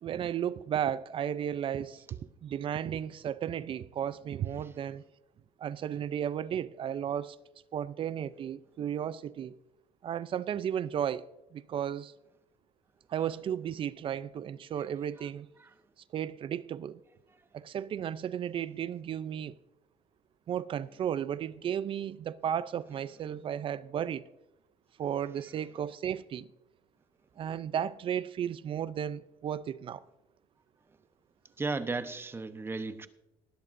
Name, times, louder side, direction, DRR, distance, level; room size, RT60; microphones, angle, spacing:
voice 1, 0.0-5.0 5.6-7.4 7.7-9.6 10.0-11.2 11.5-12.1 13.1-15.5 16.1-17.0 17.5-19.5 20.5-24.2 25.0-26.5 27.4-30.0, right 9 dB, 45° right, 0.5 m, -34 dB
voice 2, 31.6-33.1, right 3 dB, 20° right, 0.9 m, -34 dB
18.5 x 12.0 x 2.6 m
cardioid pair, 95°, 12 cm